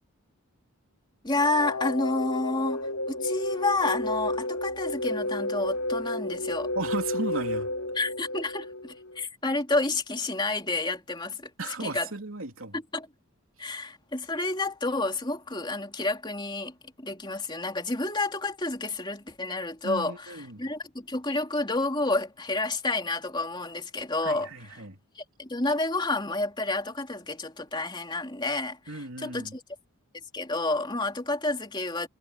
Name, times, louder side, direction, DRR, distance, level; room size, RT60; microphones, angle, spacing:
voice 1, 1.2-6.7 7.9-11.5 11.8-12.1 12.7-13.1 13.6-24.5 25.2-29.6 30.3-32.1, left 2 dB, 20° left, 3.1 m, -30 dB
sound 1, 1.3-9.2, left 2 dB, 75° left, 3.9 m, -32 dB
voice 2, 6.7-7.7 11.6-12.7 19.8-20.6 24.2-25.0 28.9-29.6, right 2 dB, 65° right, 3.3 m, -35 dB
head